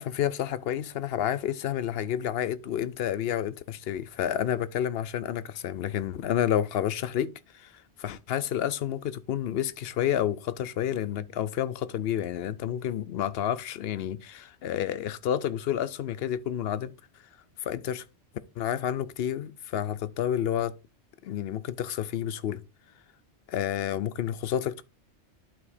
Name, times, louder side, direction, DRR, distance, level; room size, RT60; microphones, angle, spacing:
voice 1, 0.0-16.9 17.6-18.0 18.6-20.7 21.2-22.6 23.5-24.8, left 10 dB, 65° left, 0.7 m, -30 dB
11.5 x 4.8 x 2.6 m
omnidirectional pair, 1.2 m